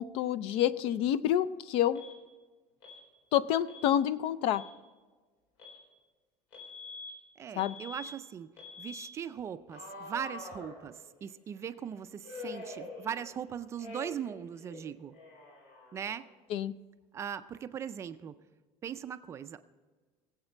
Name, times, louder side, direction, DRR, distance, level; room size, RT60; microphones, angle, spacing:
voice 1, 0.0-2.0 3.3-4.6 7.6-7.7 16.5-16.7, left 11 dB, 50° left, 16 dB, 0.5 m, -28 dB
Alarm, 1.9-2.2 2.8-3.0 3.7-3.9 4.4-4.7 5.6-5.8 6.5-7.1 7.6-8.1 8.6-9.1 9.7-11.2 12.2-13.4 13.8-14.3 14.6-16.3, left 3 dB, 85° left, 4.7 m, -46 dB
voice 2, 7.4-8.5 8.8-15.1 15.9-16.2 17.1-18.4 18.8-19.6, right 8 dB, 20° right, 11 dB, 0.4 m, -39 dB
20.0 x 8.1 x 4.4 m, 1.4 s
cardioid pair, 175°, 12 cm